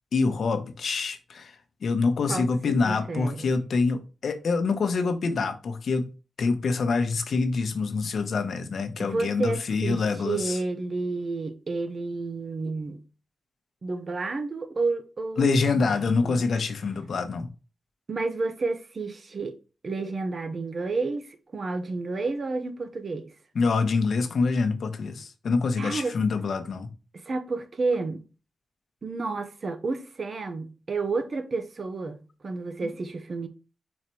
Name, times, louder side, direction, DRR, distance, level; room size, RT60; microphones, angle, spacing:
voice 1, 0.1-6.1 6.4-10.6 15.4-17.5 23.5-26.9 32.8-32.9, left 4 dB, 65° left, 0.9 m, -26 dB
voice 2, 2.3-3.5 9.0-13.0 13.8-16.4 18.1-19.6 19.8-23.4 25.8-26.1 27.1-28.2 29.0-33.5, right 3 dB, 45° right, 0.9 m, -31 dB
4.9 x 4.3 x 4.4 m
wide cardioid pair, 115°, 0 cm